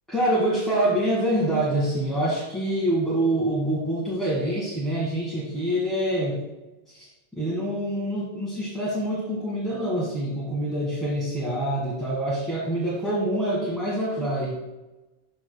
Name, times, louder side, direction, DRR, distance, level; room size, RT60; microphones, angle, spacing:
voice 1, 0.1-6.4 6.9-7.1 7.4-14.6, right 1 dB, ahead, -8 dB, 1.5 m, -26 dB
12.0 x 6.1 x 2.2 m, 1.1 s
omnidirectional pair, 1.2 m